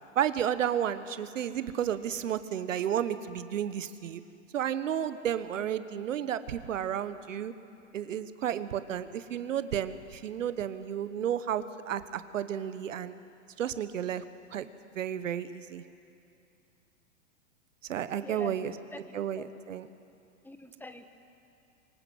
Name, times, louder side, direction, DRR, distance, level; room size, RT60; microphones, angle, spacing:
voice 1, 0.1-4.2 4.5-7.5 7.9-13.2 13.6-14.2 14.5-14.7 14.9-15.8 17.9-18.7 19.1-19.9, right 9 dB, 75° right, 13 dB, 1.2 m, -32 dB
voice 2, 18.1-19.4 20.4-21.1, left 1 dB, 5° left, 8 dB, 1.2 m, -45 dB
24.5 x 20.0 x 7.9 m, 2.6 s
hypercardioid pair, 115°, 38 cm